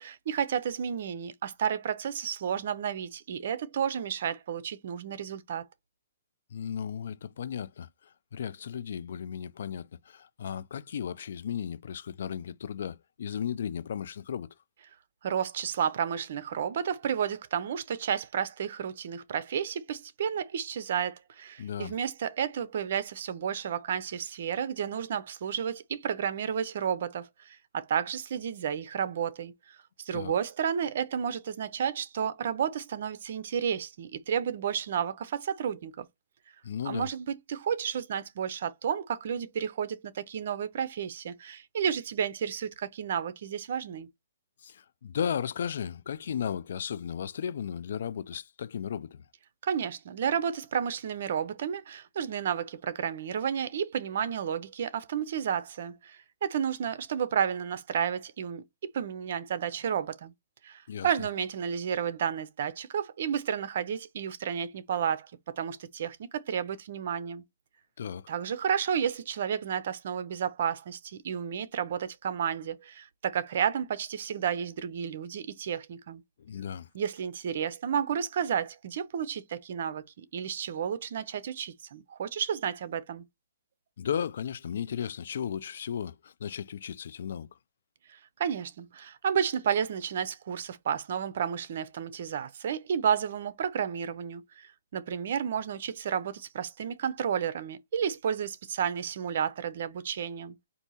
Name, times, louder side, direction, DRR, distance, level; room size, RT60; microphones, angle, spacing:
voice 1, 0.0-5.6 15.2-36.1 36.8-44.1 49.6-58.6 58.9-60.3 60.6-67.4 68.3-76.2 76.9-83.2 88.1-100.5, right 8 dB, 55° right, 0.7 m, -32 dB
voice 2, 6.5-7.9 8.3-14.5 21.6-22.0 30.1-30.3 36.6-37.1 44.6-49.2 60.9-61.1 68.0-68.3 76.4-76.9 84.0-87.5, left 8 dB, 65° left, 0.4 m, -35 dB
4.5 x 2.7 x 4.1 m
hypercardioid pair, 155°, 0 cm